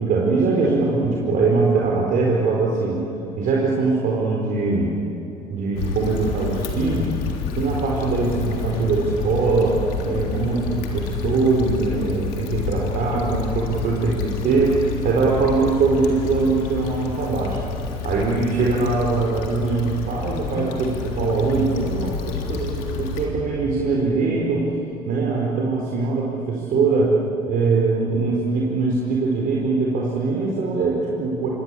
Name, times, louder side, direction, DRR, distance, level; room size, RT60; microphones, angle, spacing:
voice 1, 0.0-3.0 3.4-4.9 5.5-7.1 7.6-14.8 15.0-17.6 18.0-24.7 25.1-27.1 27.4-31.5, right 3 dB, 45° right, -2 dB, 4.4 m, -22 dB
Stream / Traffic noise roadway noise / Trickle dribble, 5.8-23.3, left 4 dB, 60° left, 3.5 m, -29 dB
27.5 x 24.0 x 8.5 m, 2.7 s
figure-of-eight pair, 65°, 20 cm